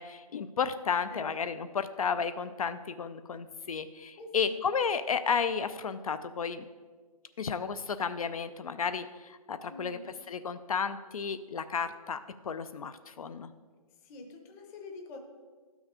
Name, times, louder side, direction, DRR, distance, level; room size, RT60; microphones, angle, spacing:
voice 1, 0.0-6.7 7.4-10.0 10.3-12.2 12.4-13.5, left 6 dB, 65° left, 12 dB, 0.5 m, -32 dB
voice 2, 1.1-1.6 4.2-4.6 9.6-10.2 14.0-15.2, left 3 dB, 15° left, 4 dB, 0.7 m, -46 dB
12.0 x 6.2 x 4.9 m, 1.5 s
hypercardioid pair, 155°, 19 cm